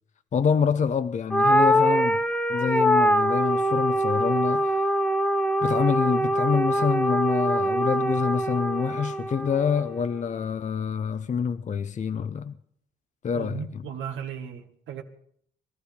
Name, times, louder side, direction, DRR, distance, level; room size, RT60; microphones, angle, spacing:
voice 1, 0.3-2.2 2.5-4.7 5.6-12.5 13.2-13.9, left 6 dB, 40° left, 0.7 m, -26 dB
sound 1, 1.3-9.9, equal, 5° left, 0.9 m, -23 dB
voice 2, 13.3-15.0, right 9 dB, 80° right, 1.6 m, -36 dB
20.0 x 12.5 x 5.1 m
cardioid pair, 90°, 20 cm